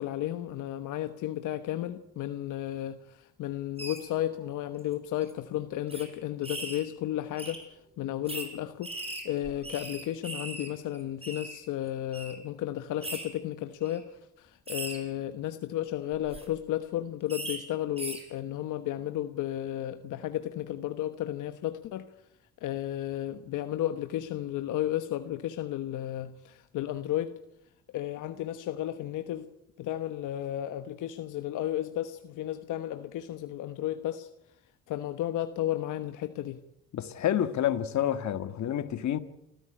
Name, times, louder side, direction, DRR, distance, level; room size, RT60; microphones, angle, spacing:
voice 1, 0.0-22.1 22.6-27.3 27.9-29.5 29.8-34.3 34.9-36.6, left 12 dB, 85° left, 1.2 m, -33 dB
sound 1, 3.8-4.0 4.8-4.9 5.2-5.3 5.9-6.0 6.4-6.8 7.4-7.6 8.3-8.5 8.8-10.7 10.9-11.5 12.1-12.3 13.0-13.2 13.8-14.0 14.7-15.0 16.1-16.4 17.3-17.6 18.0-18.2, right 2 dB, 20° right, 6.5 m, -38 dB
voice 2, 36.9-39.2, left 10 dB, 65° left, 1.8 m, -28 dB
28.5 x 14.5 x 9.9 m
cardioid pair, 90°, 30 cm